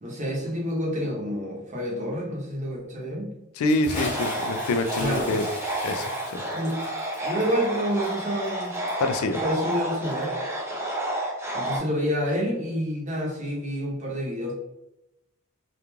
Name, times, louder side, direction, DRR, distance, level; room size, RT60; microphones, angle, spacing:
voice 1, 0.0-3.3 4.9-5.3 6.5-6.8 7.2-8.7 9.4-10.3 11.5-14.6, equal, 35° right, -3 dB, 0.8 m, -28 dB
voice 2, 3.6-5.5 5.8-6.4 9.0-9.4, left 2 dB, 75° left, 8 dB, 0.3 m, -26 dB
Bathtub (filling or washing) / Splash splatter, 3.7-10.2, left 1 dB, 30° left, 0.8 m, -39 dB
sound 1, 3.9-11.8, right 1 dB, 10° right, 0.4 m, -30 dB
2.4 x 2.3 x 3.0 m, 0.89 s
head